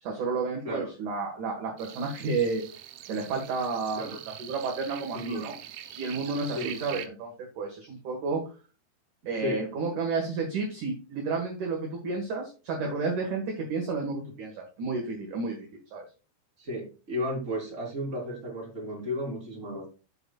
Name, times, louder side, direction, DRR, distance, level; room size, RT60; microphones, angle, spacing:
voice 1, 0.0-2.6 3.1-5.6 5.8-8.4 9.3-16.0, right 4 dB, 60° right, 1 dB, 2.4 m, -31 dB
sound 1, 1.8-7.1, right 12 dB, 85° right, 3.4 m, -44 dB
voice 2, 5.1-5.5 6.4-7.0 9.4-9.6 16.6-19.9, equal, 15° right, -3 dB, 3.7 m, -34 dB
14.0 x 5.9 x 2.3 m, 0.34 s
omnidirectional pair, 5.4 m